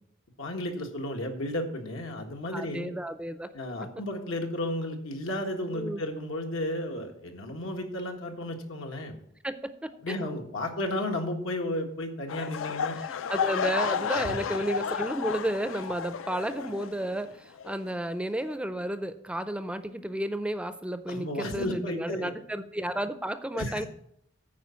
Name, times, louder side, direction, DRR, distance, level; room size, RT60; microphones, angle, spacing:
voice 1, 0.4-2.9 3.5-9.1 10.0-13.0 14.1-14.4 21.1-22.3 23.5-23.9, left 1 dB, 90° left, 3 dB, 1.6 m, -33 dB
voice 2, 2.5-3.5 5.7-6.0 9.4-10.1 13.0-23.8, right 1 dB, 5° right, 10 dB, 0.4 m, -32 dB
sound 1, 12.3-17.3 17.6-17.9 18.5-18.6, left 7 dB, 70° left, 0.4 m, -32 dB
9.4 x 4.7 x 6.9 m, 0.69 s
head